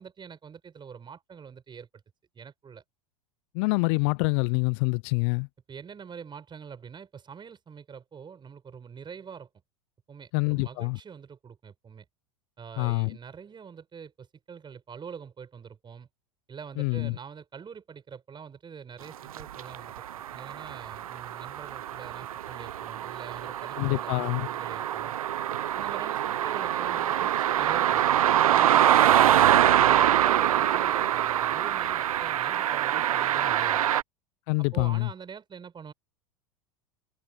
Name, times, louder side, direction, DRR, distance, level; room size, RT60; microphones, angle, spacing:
voice 1, 0.0-1.9 2.3-2.8 5.7-9.5 10.1-12.0 12.6-16.1 16.5-25.2 25.7-33.9 34.6-35.9, right 6 dB, 25° right, 7.1 m, -45 dB
voice 2, 3.5-5.5 10.3-11.0 12.8-13.2 16.8-17.2 23.8-24.5 34.5-35.1, left 33 dB, 55° left, 0.5 m, -26 dB
sound 1, 19.4-34.0, right 11 dB, 80° right, 0.6 m, -24 dB
hypercardioid pair, 90°, 18 cm